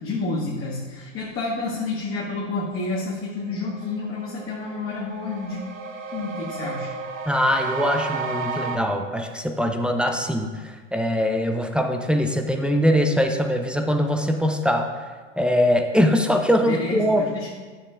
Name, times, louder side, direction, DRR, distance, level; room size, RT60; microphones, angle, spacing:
voice 1, 0.0-5.7 6.1-6.9 16.6-17.5, left 3 dB, 35° left, -6 dB, 1.6 m, -29 dB
sound 1, 3.4-8.8, right 4 dB, 85° right, 0.9 m, -33 dB
voice 2, 7.3-14.9 15.4-17.5, equal, 5° right, 4 dB, 0.4 m, -22 dB
9.5 x 6.9 x 2.5 m, 1.4 s
hypercardioid pair, 95°, 38 cm